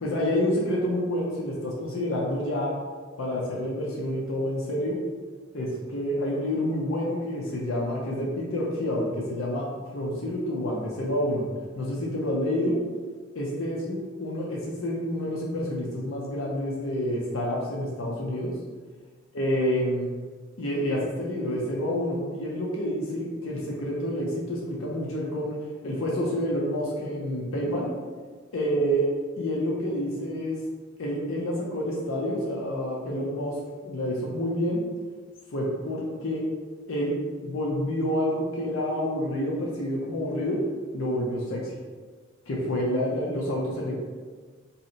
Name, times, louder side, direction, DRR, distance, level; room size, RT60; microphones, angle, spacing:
voice 1, 0.0-2.7 3.2-5.0 5.5-9.7 9.9-11.5 11.8-12.8 13.3-18.5 19.3-20.1 20.6-25.6 25.8-27.9 28.5-29.1 29.4-30.6 31.0-33.6 33.8-34.8 35.5-36.4 36.9-37.2 37.4-40.6 40.9-41.7 42.5-44.0, equal, 80° left, -3 dB, 0.6 m, -28 dB
2.7 x 2.1 x 3.8 m, 1.5 s
head